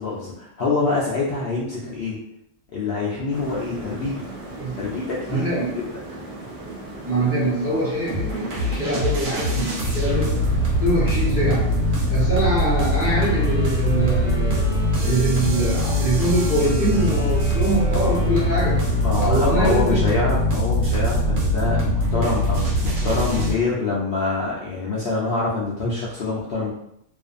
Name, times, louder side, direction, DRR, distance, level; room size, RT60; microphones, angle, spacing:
voice 1, 0.0-2.2 2.7-4.3 4.8-5.5 19.0-26.7, left 3 dB, 60° left, -6 dB, 0.7 m, -25 dB
sound 1, 3.3-19.9, right 2 dB, 65° right, 0.3 m, -37 dB
voice 2, 5.3-5.7 7.0-10.4 10.7-11.6 12.1-14.8 15.0-18.8 19.2-20.0, right 1 dB, 15° right, -8 dB, 0.8 m, -23 dB
sound 2, 8.1-23.5, equal, 90° right, 1.1 m, -22 dB
sound 3, 13.0-19.5, right 1 dB, 40° right, 1.0 m, -36 dB
2.5 x 2.4 x 2.5 m, 0.76 s
omnidirectional pair, 1.3 m